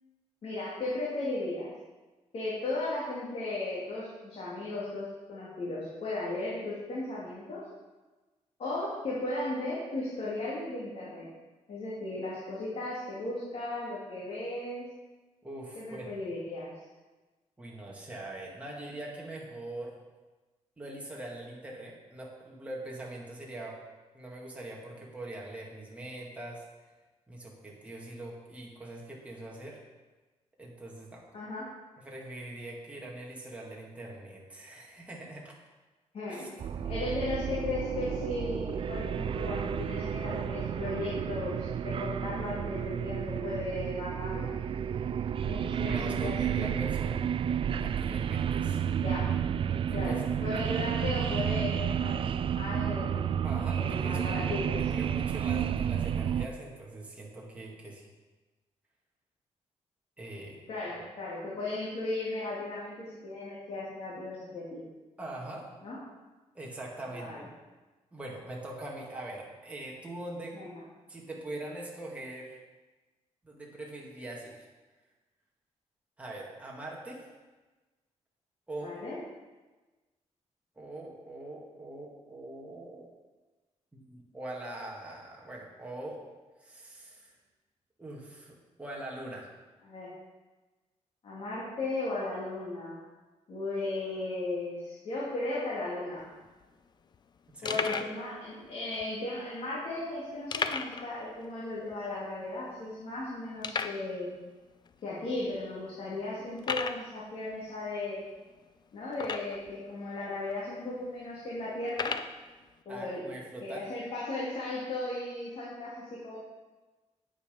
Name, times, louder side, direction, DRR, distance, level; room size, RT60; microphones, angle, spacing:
voice 1, 0.4-1.7 2.3-7.6 8.6-11.3 11.7-14.8 15.8-16.7 31.3-31.7 36.1-36.5 36.9-44.5 45.4-46.7 49.0-49.3 49.9-53.2 53.7-54.9 60.7-64.8 65.8-66.0 67.2-67.4 70.5-70.7 78.8-79.2 89.8-90.1 91.2-93.0 93.5-96.2 97.6-104.3 105.0-108.2 108.9-112.2 112.8-113.2 113.6-116.4, left 2 dB, 55° left, -7 dB, 2.9 m, -36 dB
voice 2, 15.4-16.1 17.6-20.0 20.8-23.8 24.1-26.6 27.3-29.8 30.6-31.2 32.0-35.5 36.3-36.5 45.8-47.2 47.8-48.8 49.9-50.2 50.5-50.6 53.4-58.1 60.2-60.6 61.0-61.1 65.2-65.7 66.5-67.5 68.1-70.6 71.1-72.6 73.4-74.5 76.2-77.2 78.7-79.0 80.8-83.1 83.9-86.2 86.6-87.4 88.0-89.5 97.5-97.8 112.9-113.9, right 1 dB, 10° right, -3 dB, 2.0 m, -42 dB
sound 1, 36.6-56.5, right 8 dB, 50° right, 0.4 m, -31 dB
sound 2, 96.2-96.3 96.5-96.6 97.1-97.2 97.7-98.2 98.9-99.0 100.5-101.1 101.4-101.5 101.9-102.0 102.6-102.7 103.6-104.1 104.9-105.0 105.5-105.6 106.6-107.1 109.1-109.7 110.5-110.6 111.9-112.3, left 5 dB, 40° left, 0.5 m, -33 dB
9.7 x 8.7 x 5.2 m, 1.2 s
wide cardioid pair, 145°, 12 cm